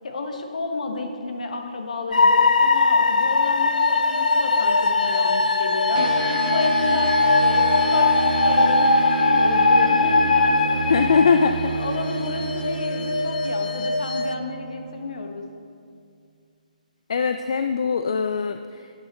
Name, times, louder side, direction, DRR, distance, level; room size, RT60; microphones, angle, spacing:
voice 1, 0.0-11.3 11.7-15.4, left 3 dB, 55° left, 4 dB, 1.3 m, -31 dB
sound 1, 2.1-14.3, left 3 dB, 75° left, 0.7 m, -20 dB
sound 2, 6.0-15.7, right 5 dB, 90° right, 0.5 m, -30 dB
voice 2, 10.9-11.7 17.1-18.9, left 5 dB, 40° left, 9 dB, 0.3 m, -21 dB
11.0 x 9.5 x 4.3 m, 2.3 s
hypercardioid pair, 175°, 5 cm